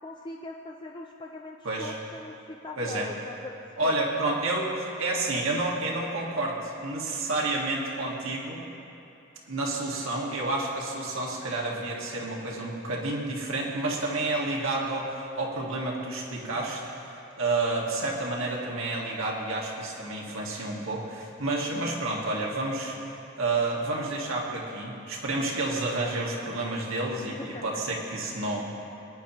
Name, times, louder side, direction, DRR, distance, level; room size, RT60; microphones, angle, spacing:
voice 1, 0.0-3.9 27.5-27.8, left 2 dB, 20° left, 1 dB, 0.4 m, -41 dB
voice 2, 1.6-2.0 2.8-3.1 3.8-8.6 9.5-16.8 17.4-23.0 23.4-28.7, right 2 dB, 65° right, -3 dB, 1.7 m, -30 dB
20.0 x 9.8 x 3.0 m, 2.8 s
head